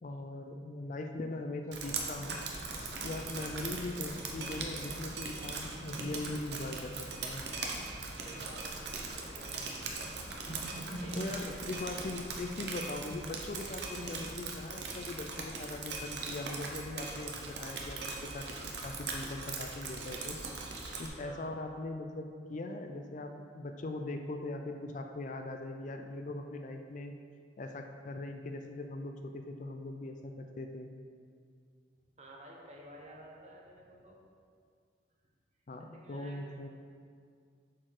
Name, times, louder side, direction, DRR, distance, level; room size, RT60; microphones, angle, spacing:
voice 1, 0.0-2.4 3.0-7.4 11.2-18.5 18.8-20.4 21.0-27.1 27.6-30.9 35.7-36.7, left 2 dB, 40° left, 5 dB, 0.4 m, -40 dB
Drip, 1.7-21.1, right 3 dB, 65° right, 0.8 m, -40 dB
sound 1, 1.9-12.3, right 1 dB, 65° left, 1.2 m, -48 dB
voice 2, 3.2-3.6 8.2-9.7 10.7-11.4 21.2-21.6 32.2-34.2 35.9-36.4, right 1 dB, 35° right, -2 dB, 1.1 m, -52 dB
7.3 x 4.5 x 4.8 m, 2.2 s
head